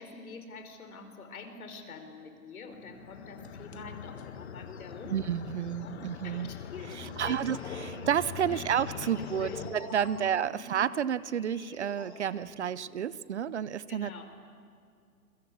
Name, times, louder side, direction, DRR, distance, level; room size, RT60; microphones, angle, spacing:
voice 1, 0.0-5.2 5.8-6.0 6.2-7.5 7.7-7.9 8.4-8.7 9.0-9.7 10.0-10.2 10.5-10.7 13.9-14.2, left 4 dB, 65° left, 6 dB, 4.8 m, -46 dB
sound 1, 2.7-9.7, left 8 dB, 45° left, 1.8 m, -43 dB
voice 2, 5.1-6.5 6.9-14.2, right 9 dB, 50° right, 18 dB, 0.7 m, -31 dB
sound 2, 6.9-13.3, left 3 dB, 10° left, 2.9 m, -47 dB
28.5 x 22.5 x 8.5 m, 2.3 s
hypercardioid pair, 160°, 46 cm